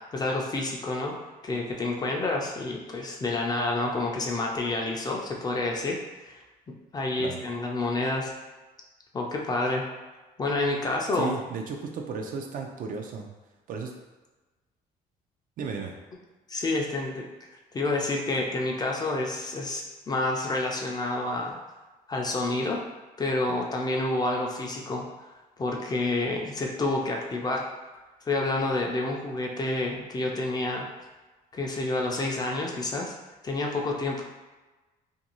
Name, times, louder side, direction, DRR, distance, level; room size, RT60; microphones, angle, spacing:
voice 1, 0.1-1.2 1.4-6.0 6.2-6.3 6.7-8.3 9.1-9.8 10.4-11.3 16.5-17.3 17.7-21.6 22.1-22.8 23.2-25.1 25.6-27.6 28.3-30.9 31.5-33.2 33.4-34.2, left 2 dB, 25° left, 0 dB, 0.4 m, -28 dB
voice 2, 11.1-13.3 13.7-13.9 15.6-15.9 23.5-23.6, right 5 dB, 55° right, 2 dB, 0.4 m, -34 dB
2.5 x 2.3 x 2.9 m, 1.2 s
cardioid pair, 110°, 17 cm